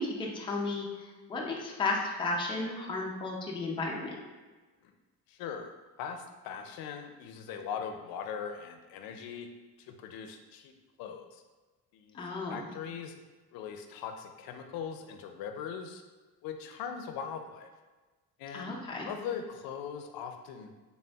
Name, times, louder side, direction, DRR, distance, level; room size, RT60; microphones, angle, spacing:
voice 1, 0.0-4.1 12.1-12.7 18.5-19.1, left 3 dB, 15° left, -1 dB, 0.4 m, -34 dB
voice 2, 5.3-9.5 9.8-10.7 11.0-11.4 11.9-12.2 12.5-13.1 13.5-16.0 16.4-17.7 18.4-18.7 19.1-20.7, left 7 dB, 80° left, 6 dB, 0.5 m, -40 dB
4.2 x 3.4 x 2.3 m, 1.3 s
cardioid pair, 145°, 36 cm